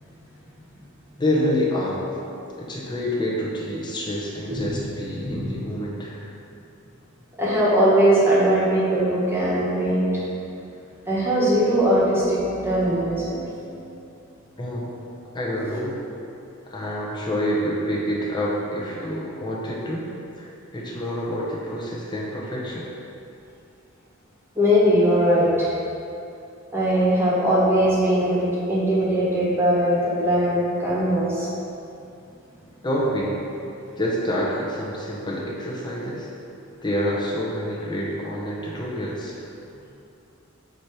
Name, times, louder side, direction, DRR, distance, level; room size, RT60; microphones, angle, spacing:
voice 1, 1.2-2.0 2.6-6.3 14.6-14.9 15.3-16.0 16.7-20.1 20.4-22.9 32.8-33.4 34.0-36.3 36.8-39.4, equal, 20° left, -4 dB, 0.9 m, -27 dB
voice 2, 7.4-10.1 11.1-13.8 15.6-15.8 24.5-25.7 26.7-31.5, equal, 10° right, -7 dB, 1.4 m, -20 dB
8.0 x 3.0 x 4.7 m, 2.6 s
head